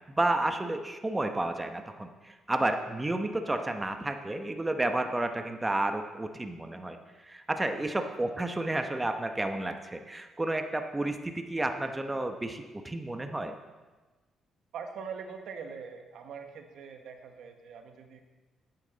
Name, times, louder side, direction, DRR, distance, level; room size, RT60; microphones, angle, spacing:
voice 1, 0.1-13.5, right 2 dB, 15° right, 6 dB, 1.0 m, -31 dB
voice 2, 14.7-18.2, right 6 dB, 75° right, 6 dB, 1.2 m, -43 dB
11.5 x 9.0 x 4.0 m, 1.2 s
cardioid pair, 90°, 0 cm